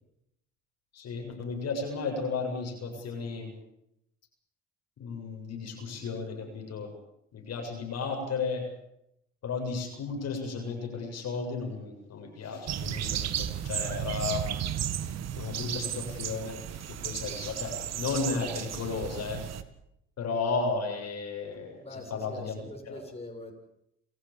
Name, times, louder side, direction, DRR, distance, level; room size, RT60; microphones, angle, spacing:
voice 1, 0.9-3.5 5.0-6.9 7.3-8.6 9.4-14.5 15.0-16.6 16.9-19.4 20.2-23.0, left 4 dB, 60° left, 3 dB, 7.7 m, -34 dB
sound 1, 12.7-19.6, right 10 dB, 65° right, 2.1 m, -34 dB
voice 2, 21.8-23.5, left 2 dB, 20° left, 2 dB, 7.7 m, -43 dB
30.0 x 14.5 x 8.8 m, 0.78 s
supercardioid pair, 75°, 29 cm